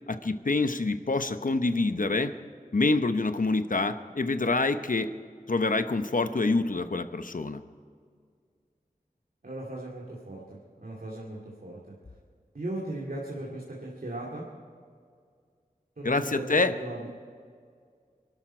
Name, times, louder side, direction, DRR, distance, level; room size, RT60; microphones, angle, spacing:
voice 1, 0.1-2.3 2.7-5.1 5.5-7.6 16.0-16.7, left 3 dB, 60° left, 10 dB, 0.9 m, -26 dB
voice 2, 9.4-11.8 12.5-14.5 16.0-17.1, right 1 dB, 75° right, -4 dB, 2.4 m, -38 dB
24.5 x 12.0 x 4.4 m, 2.1 s
wide cardioid pair, 55°, 15 cm